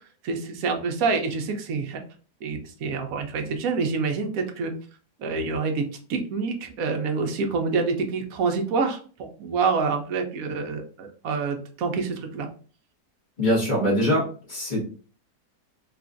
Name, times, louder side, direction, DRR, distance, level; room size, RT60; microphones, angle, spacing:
voice 1, 0.2-2.0 2.4-4.7 5.2-5.8 6.1-12.5, right 4 dB, 65° right, 4 dB, 1.0 m, -27 dB
voice 2, 13.4-14.8, equal, 30° left, -5 dB, 1.4 m, -23 dB
3.7 x 2.5 x 2.4 m, 0.40 s
omnidirectional pair, 1.8 m